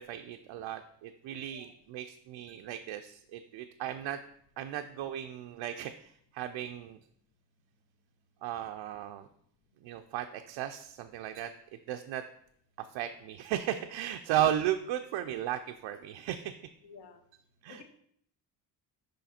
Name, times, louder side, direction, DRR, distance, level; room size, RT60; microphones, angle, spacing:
voice 1, 0.0-4.2 4.6-7.0 8.4-9.3 9.8-11.5 11.9-12.2 12.9-16.6 17.6-17.8, right 11 dB, 75° right, 6 dB, 0.5 m, -35 dB
voice 2, 16.8-17.2 17.7-17.8, left 6 dB, 65° left, 7 dB, 0.9 m, -51 dB
6.5 x 5.1 x 4.2 m, 0.70 s
cardioid pair, 145°, 45 cm